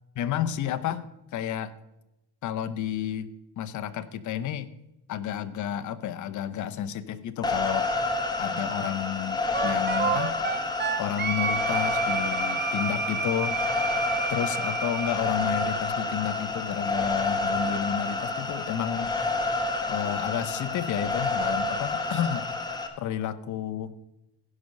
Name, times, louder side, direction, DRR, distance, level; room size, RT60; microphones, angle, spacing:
voice 1, 0.2-1.1 1.3-1.7 2.4-3.3 3.6-4.7 5.1-7.9 8.4-10.3 11.0-13.6 14.3-19.1 19.9-22.5 23.0-23.9, left 10 dB, 50° left, 10 dB, 0.9 m, -31 dB
sound 1, 7.4-22.9, left 3 dB, 10° left, 1.5 m, -29 dB
Wind instrument woodwind instrument, 9.5-15.2, right 6 dB, 25° right, 1.1 m, -30 dB
16.0 x 5.5 x 6.4 m, 0.90 s
cardioid pair, 135°, 39 cm